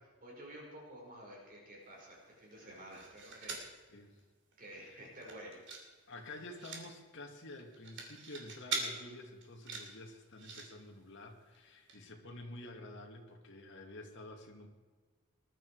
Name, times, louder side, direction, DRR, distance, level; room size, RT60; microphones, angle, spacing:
voice 1, 0.2-3.6 4.6-5.6, right 1 dB, 40° right, -2 dB, 5.2 m, -51 dB
sound 1, 2.6-3.7 4.2-4.3 4.5-4.8 5.1-5.9 6.1-6.8 7.6-8.9 9.4-10.7 11.5-11.6 11.9-12.0, right 4 dB, 60° right, 2.9 m, -42 dB
voice 2, 6.1-14.7, left 2 dB, 60° left, 2 dB, 2.2 m, -49 dB
20.0 x 11.5 x 4.8 m, 1.4 s
head